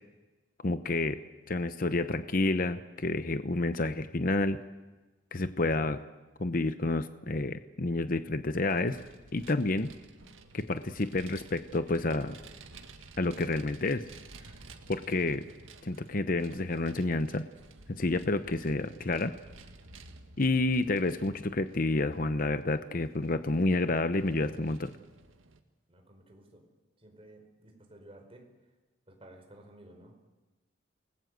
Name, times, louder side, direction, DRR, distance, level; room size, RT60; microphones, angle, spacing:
voice 1, 0.6-1.2 1.5-4.6 5.3-6.0 6.4-9.0 9.3-9.9 10.5-12.4 13.2-14.0 14.9-15.4 15.8-17.4 17.9-19.3 20.4-24.9, left 2 dB, 45° left, 11 dB, 0.8 m, -29 dB
Vehicle, 8.7-25.6, right 3 dB, 80° right, 1.9 m, -53 dB
voice 2, 25.9-26.6 27.0-28.4 29.1-30.2, right 1 dB, 30° right, 3 dB, 4.9 m, -54 dB
28.5 x 20.5 x 8.0 m, 1.2 s
head